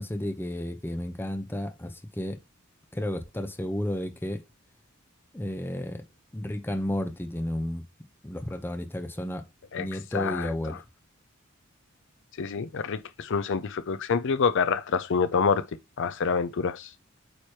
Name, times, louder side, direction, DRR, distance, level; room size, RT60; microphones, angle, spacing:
voice 1, 0.0-2.4 2.9-4.4 5.3-6.0 6.3-7.8 8.2-9.4 9.8-10.8, left 1 dB, 10° left, 0.8 m, -32 dB
voice 2, 10.1-10.8 12.4-15.6 16.0-16.9, left 5 dB, 60° left, 0.5 m, -27 dB
8.8 x 3.0 x 4.8 m
head